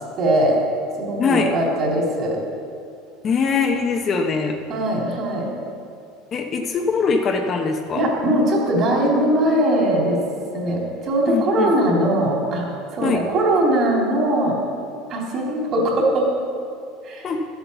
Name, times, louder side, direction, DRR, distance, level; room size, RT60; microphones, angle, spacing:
voice 1, 0.2-0.6 1.0-2.4 4.7-5.5 8.0-10.2 10.5-12.7 12.9-14.6 15.1-16.3 17.0-17.3, right 1 dB, 40° right, -2 dB, 3.4 m, -20 dB
voice 2, 1.2-1.5 3.2-4.6 6.3-8.1 11.3-11.7 13.0-13.2 17.2-17.4, left 5 dB, 30° left, 3 dB, 0.9 m, -22 dB
12.5 x 8.2 x 7.0 m, 2.4 s
supercardioid pair, 140°, 0 cm